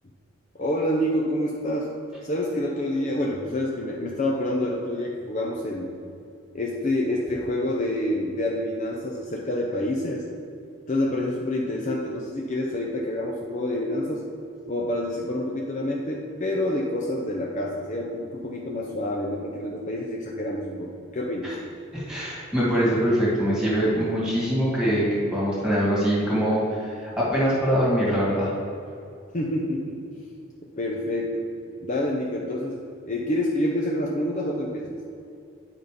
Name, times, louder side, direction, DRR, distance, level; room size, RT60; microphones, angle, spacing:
voice 1, 0.5-1.9 2.2-5.9 6.5-10.2 10.9-14.3 14.7-21.6 29.3-30.0 30.8-31.5 31.8-32.8 33.1-34.9, left 1 dB, 35° left, -1 dB, 0.6 m, -27 dB
voice 2, 21.9-28.5, equal, 5° right, -7 dB, 1.9 m, -23 dB
9.3 x 4.0 x 5.1 m, 2.5 s
head